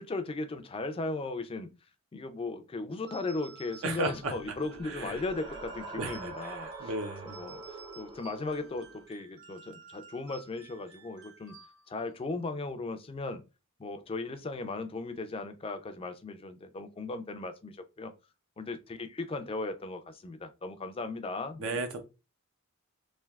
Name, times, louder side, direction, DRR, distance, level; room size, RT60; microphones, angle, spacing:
voice 1, 0.0-1.7 2.1-6.9 7.2-11.5 11.9-13.4 13.8-18.1 18.6-21.8, left 3 dB, 25° left, 0.3 m, -37 dB
sound 1, 3.1-12.1, right 5 dB, 85° right, 1.1 m, -54 dB
voice 2, 3.8-4.3 4.8-5.2 6.0-7.4 21.6-22.0, right 2 dB, 65° right, 0.4 m, -35 dB
sound 2, 3.9-9.0, right 3 dB, 25° right, 0.6 m, -45 dB
3.2 x 2.7 x 2.2 m
head